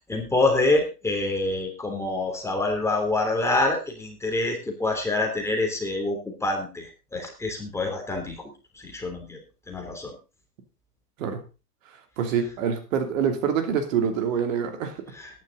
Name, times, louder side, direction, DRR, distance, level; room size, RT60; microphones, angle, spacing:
voice 1, 0.1-8.3 8.7-9.4 9.7-10.1 15.1-15.4, left 2 dB, 5° left, 2 dB, 3.2 m, -26 dB
voice 2, 12.2-15.0, right 7 dB, 55° right, 6 dB, 3.0 m, -25 dB
14.0 x 11.0 x 3.9 m, 0.31 s
hypercardioid pair, 135°, 47 cm